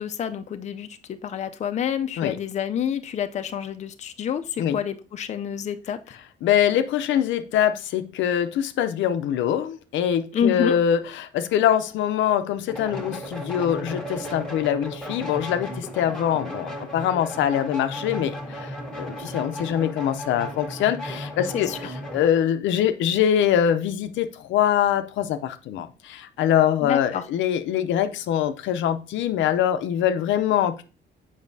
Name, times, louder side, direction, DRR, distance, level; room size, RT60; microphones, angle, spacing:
voice 1, 0.0-6.2 10.3-10.8 21.5-21.8 26.8-27.2, left 8 dB, 40° left, 0.5 m, -28 dB
voice 2, 6.4-30.8, left 10 dB, 85° left, 0.6 m, -23 dB
sound 1, 12.7-22.3, equal, 5° left, 1.4 m, -35 dB
7.1 x 5.4 x 2.6 m
cardioid pair, 130°, 19 cm